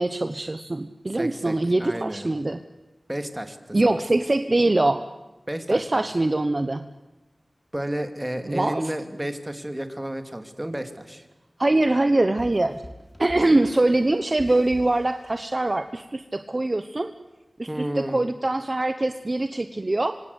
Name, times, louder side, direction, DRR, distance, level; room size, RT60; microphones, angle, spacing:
voice 1, 0.0-2.6 3.7-5.0 5.7-6.8 8.4-8.8 11.6-12.8 13.2-17.1 17.6-20.1, right 2 dB, 40° right, 9 dB, 1.0 m, -23 dB
voice 2, 1.1-2.3 3.1-3.8 5.5-6.0 7.7-11.3 17.7-18.2, right 1 dB, 15° right, 7 dB, 2.7 m, -32 dB
sound 1, 12.4-16.0, equal, 20° left, 3.4 m, -45 dB
26.0 x 25.5 x 8.2 m, 1.1 s
wide cardioid pair, 75°, 0 cm